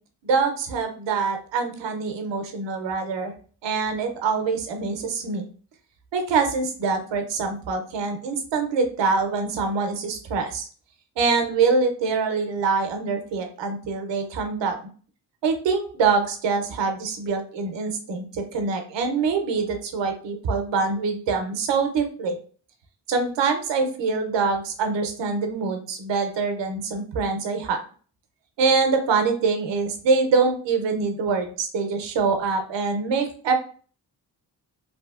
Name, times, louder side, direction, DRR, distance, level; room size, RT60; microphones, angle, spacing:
voice 1, 0.2-3.3 3.6-5.4 6.1-10.7 11.2-14.8 15.4-22.4 23.1-27.8 28.6-33.5, right 4 dB, 85° right, 5 dB, 0.6 m, -24 dB
2.8 x 2.6 x 2.3 m, 0.42 s
cardioid pair, 60°, 42 cm